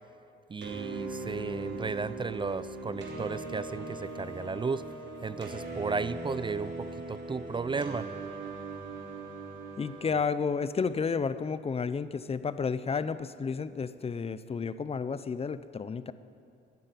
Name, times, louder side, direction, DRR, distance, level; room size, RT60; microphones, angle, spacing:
voice 1, 0.5-4.8 5.2-8.1, right 4 dB, 25° right, 16 dB, 0.4 m, -34 dB
sound 1, 0.6-10.2, right 2 dB, 65° right, 3.0 m, -40 dB
voice 2, 9.8-16.1, left 5 dB, 30° left, 14 dB, 0.6 m, -31 dB
14.0 x 10.5 x 9.1 m, 2.6 s
cardioid pair, 90°, 20 cm